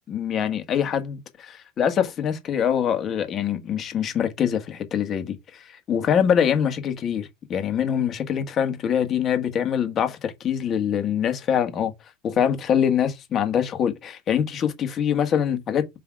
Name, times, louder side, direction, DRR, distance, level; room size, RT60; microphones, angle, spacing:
voice 1, 0.1-11.9 12.2-16.0, left 8 dB, 35° left, 1.7 m, -24 dB
6.1 x 3.4 x 4.7 m
supercardioid pair, 125°, 0 cm